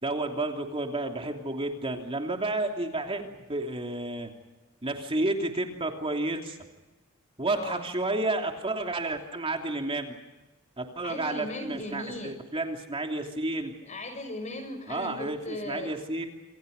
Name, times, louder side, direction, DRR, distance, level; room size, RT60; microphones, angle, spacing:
voice 1, 0.0-4.3 4.8-6.6 7.4-10.2 10.8-13.7 14.9-16.3, right 2 dB, 25° right, 3 dB, 3.0 m, -31 dB
voice 2, 7.5-7.8 11.0-12.4 13.8-15.9, left 2 dB, 35° left, 7 dB, 6.6 m, -37 dB
28.0 x 26.5 x 5.4 m, 1.1 s
head